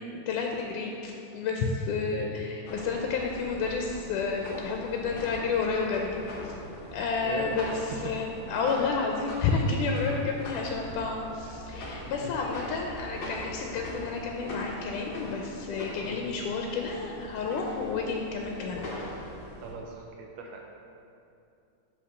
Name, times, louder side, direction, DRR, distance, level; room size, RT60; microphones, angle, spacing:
voice 1, 0.3-6.5 6.9-18.9, left 4 dB, 85° left, 1 dB, 2.1 m, -30 dB
sound 1, 2.7-19.7, left 1 dB, 60° left, 1.5 m, -42 dB
voice 2, 7.2-7.8 8.8-8.9 10.1-10.2 11.8-11.9 12.2-12.4 16.0-16.2 19.6-20.6, right 4 dB, 80° right, 1 dB, 1.6 m, -40 dB
5.8 x 5.1 x 6.3 m, 2.6 s
omnidirectional pair, 3.6 m